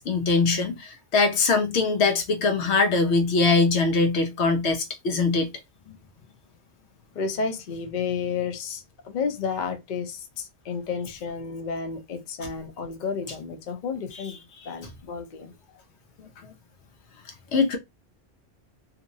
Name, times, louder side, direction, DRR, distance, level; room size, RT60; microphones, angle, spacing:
voice 1, 0.0-5.5 12.4-12.5 17.5-17.8, left 4 dB, 90° left, 1.0 m, -22 dB
voice 2, 7.1-15.5, left 5 dB, 50° left, 0.7 m, -31 dB
2.9 x 2.6 x 2.6 m
omnidirectional pair, 1.1 m